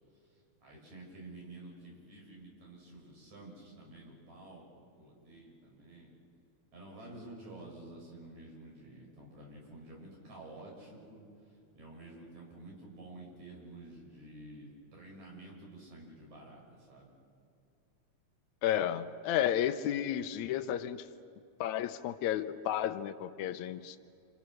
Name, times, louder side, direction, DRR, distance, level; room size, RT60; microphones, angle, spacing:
voice 1, 0.6-6.1 6.7-11.2 11.8-17.1, right 2 dB, 70° right, -2 dB, 7.7 m, -50 dB
voice 2, 18.6-21.1 21.6-24.0, left 10 dB, 80° left, 9 dB, 2.1 m, -32 dB
28.0 x 27.0 x 6.5 m, 2.4 s
omnidirectional pair, 3.4 m